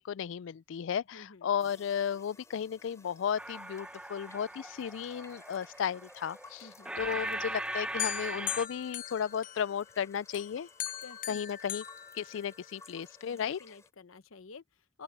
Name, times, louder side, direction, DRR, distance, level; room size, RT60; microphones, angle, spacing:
voice 1, 0.0-6.7 7.0-10.7 11.3-11.8 12.1-13.6, left 8 dB, 65° left, 0.3 m, -34 dB
voice 2, 1.1-1.5 6.6-6.9 11.0-11.6 13.3-15.0, left 4 dB, 90° left, 0.9 m, -51 dB
sound 1, 1.5-13.9, left 3 dB, 15° left, 3.0 m, -57 dB
sound 2, 3.4-8.7, right 1 dB, 5° right, 0.7 m, -39 dB
sound 3, 8.0-9.9 10.3-12.9, left 12 dB, 40° left, 0.8 m, -40 dB
open air
head